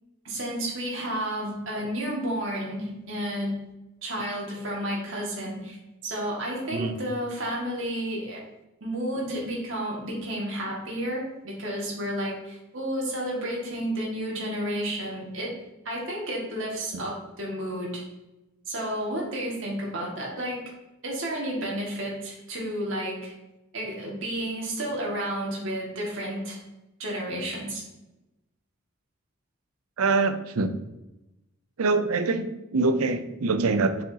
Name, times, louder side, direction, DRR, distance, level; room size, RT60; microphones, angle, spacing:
voice 1, 0.2-3.5 4.0-5.8 6.0-8.4 8.8-15.5 15.9-18.0 18.7-20.6 21.0-23.3 23.7-26.6 27.0-27.8, right 1 dB, 60° right, -3 dB, 2.0 m, -31 dB
voice 2, 30.0-30.7 31.8-34.0, right 3 dB, 90° right, 10 dB, 0.6 m, -24 dB
6.9 x 4.9 x 2.8 m, 0.98 s
head